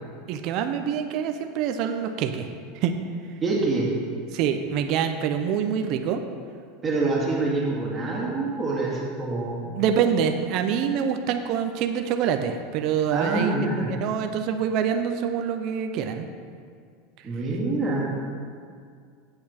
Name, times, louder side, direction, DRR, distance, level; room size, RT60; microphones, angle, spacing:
voice 1, 0.3-2.5 2.8-2.9 4.3-6.2 9.8-13.5 14.0-16.2, right 8 dB, 50° right, 6 dB, 0.6 m, -25 dB
voice 2, 3.4-3.9 6.8-9.8 13.1-13.9 17.2-18.1, right 2 dB, 20° right, -4 dB, 2.1 m, -26 dB
8.5 x 7.7 x 4.4 m, 2.2 s
supercardioid pair, 130°, 0 cm